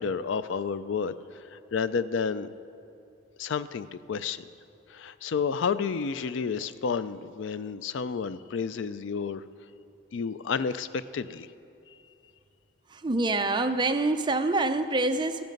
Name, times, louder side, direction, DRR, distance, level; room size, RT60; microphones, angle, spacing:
voice 1, 0.0-2.5 3.4-4.5 4.9-9.4 10.1-11.5, left 5 dB, 70° left, 14 dB, 0.4 m, -31 dB
voice 2, 12.9-15.4, right 2 dB, 25° right, 8 dB, 0.5 m, -26 dB
14.5 x 12.0 x 5.3 m, 2.7 s
head